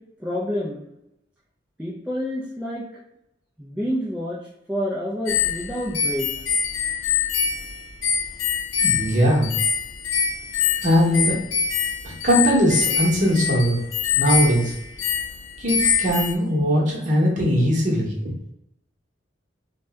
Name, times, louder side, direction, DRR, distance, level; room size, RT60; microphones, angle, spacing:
voice 1, 0.2-0.8 1.8-2.8 3.6-4.4 4.7-6.3, equal, 5° right, -7 dB, 0.4 m, -28 dB
sound 1, 5.3-16.3, left 7 dB, 85° left, 0.5 m, -24 dB
voice 2, 8.8-9.5 10.8-11.4 12.0-13.8 14.1-14.7 15.6-18.1, equal, 40° right, -3 dB, 0.9 m, -20 dB
2.7 x 2.1 x 3.3 m, 0.82 s
head